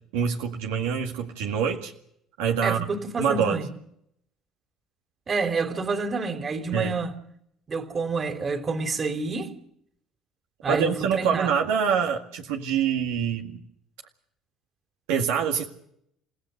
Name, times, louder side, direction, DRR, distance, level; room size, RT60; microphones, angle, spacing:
voice 1, 0.1-1.9 2.4-2.9 3.2-3.6 6.7-6.9 10.7-13.6 15.1-15.7, right 7 dB, 85° right, 2.0 m, -25 dB
voice 2, 2.6-3.7 5.3-7.1 7.7-9.5 10.6-11.5, right 4 dB, 40° right, 3.2 m, -28 dB
30.0 x 16.0 x 6.7 m
hypercardioid pair, 70°, 0 cm